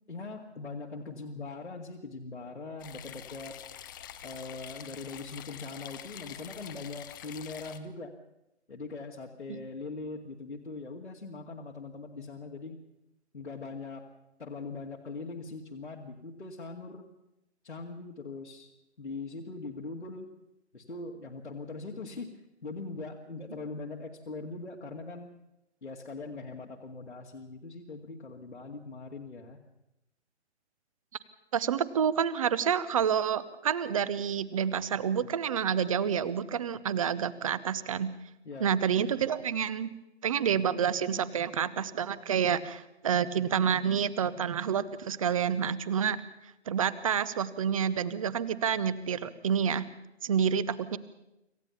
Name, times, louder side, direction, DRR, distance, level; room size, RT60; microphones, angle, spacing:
voice 1, 0.1-3.5 4.2-8.1 8.7-12.8 13.3-14.0 14.4-17.1 17.6-18.7 19.0-20.3 20.7-25.3 25.8-29.6 38.4-38.7, left 3 dB, 75° left, -1 dB, 2.2 m, -41 dB
sound 1, 2.8-7.8, left 11 dB, 20° left, 0.8 m, -46 dB
voice 2, 31.5-38.1 38.6-39.9 40.2-46.2 46.7-49.9 50.2-51.0, right 8 dB, 30° right, 17 dB, 0.8 m, -28 dB
26.5 x 15.0 x 7.1 m, 0.90 s
figure-of-eight pair, 135°, 34 cm